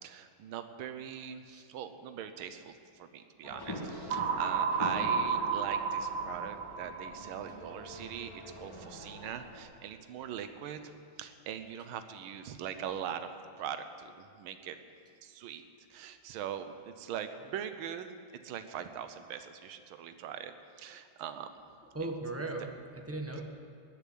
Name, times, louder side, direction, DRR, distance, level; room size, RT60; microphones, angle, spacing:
voice 1, 0.0-10.8 11.2-13.3 13.6-14.8 15.2-15.6 15.9-18.2 18.4-20.5 20.8-21.5 23.4-23.5, right 9 dB, 85° right, 9 dB, 1.6 m, -41 dB
sound 1, 3.4-9.6, left 1 dB, 10° left, 1.5 m, -44 dB
sound 2, 4.1-8.0, right 6 dB, 65° right, 1.3 m, -32 dB
voice 2, 21.9-23.4, right 2 dB, 10° right, 2 dB, 0.9 m, -38 dB
19.5 x 7.0 x 9.4 m, 2.2 s
omnidirectional pair, 2.2 m